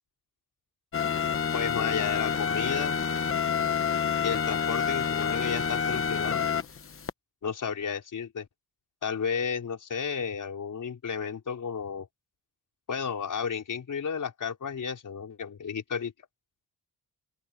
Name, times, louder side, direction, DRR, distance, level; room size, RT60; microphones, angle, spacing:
sound 1, 0.9-7.1, left 7 dB, 35° left, 1.0 m, -28 dB
voice 1, 1.5-3.0 4.2-6.5 7.4-8.5 9.0-12.1 12.9-16.1, left 6 dB, 55° left, 4.7 m, -32 dB
open air
wide cardioid pair, 170°, 37 cm